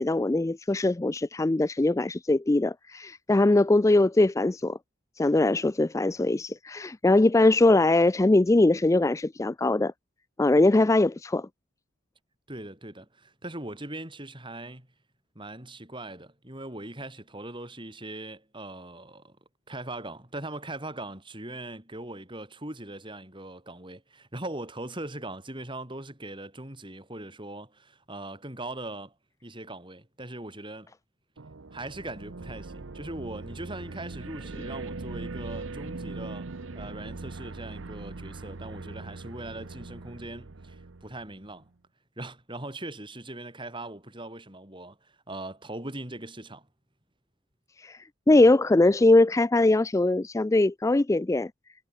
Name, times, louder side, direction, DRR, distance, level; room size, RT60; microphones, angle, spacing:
voice 1, 0.0-4.8 5.2-9.9 10.4-11.5 47.8-51.5, left 2 dB, 15° left, 0.3 m, -21 dB
voice 2, 12.5-14.9 15.3-19.4 19.7-29.1 29.4-30.9 31.7-36.5 36.7-41.7 42.2-46.7, right 1 dB, 25° right, 5.0 m, -40 dB
sound 1, 31.4-41.6, right 3 dB, 65° right, 0.8 m, -40 dB
head